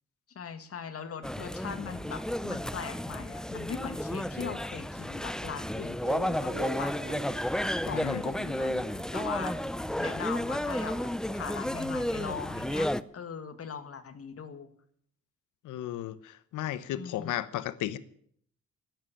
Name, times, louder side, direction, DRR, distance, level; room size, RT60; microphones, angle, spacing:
voice 1, 0.4-7.1 7.9-8.9 9.1-9.5 9.9-14.7 16.9-17.3, left 6 dB, 50° left, 2.1 m, -40 dB
sound 1, 1.2-13.0, left 1 dB, ahead, 0.5 m, -32 dB
sound 2, 6.0-10.6, right 4 dB, 35° right, 2.2 m, -45 dB
voice 2, 7.7-8.2 15.6-18.0, left 13 dB, 85° left, 1.0 m, -35 dB
13.5 x 10.0 x 8.6 m
cardioid pair, 90°, 30 cm